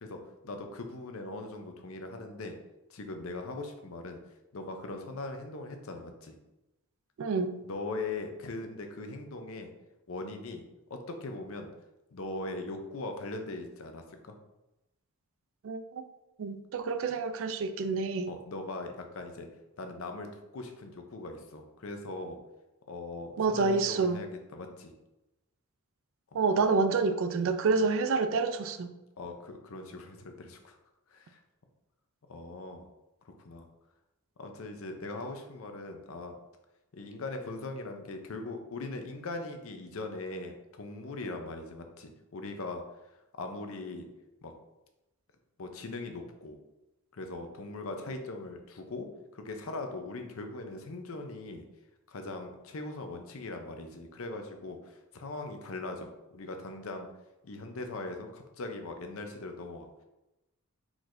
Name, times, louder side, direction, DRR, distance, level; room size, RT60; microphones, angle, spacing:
voice 1, 0.0-2.5 2.9-4.2 4.5-6.3 7.6-9.7 10.1-10.6 10.9-11.7 12.1-14.3 18.3-19.5 19.8-22.4 22.9-24.9 27.8-27.9 29.2-30.8 31.1-31.4 32.3-32.9 33.3-33.7 34.4-36.4 36.9-42.8 43.4-44.1 44.4-44.5 45.6-46.6 47.1-51.7 52.1-57.1 57.4-59.9, left 2 dB, 65° left, 5 dB, 0.6 m, -40 dB
voice 2, 7.2-7.6 15.6-16.0 16.4-18.3 23.4-24.2 26.3-28.9, right 4 dB, 60° right, 10 dB, 0.3 m, -28 dB
4.6 x 4.0 x 2.6 m, 0.97 s
head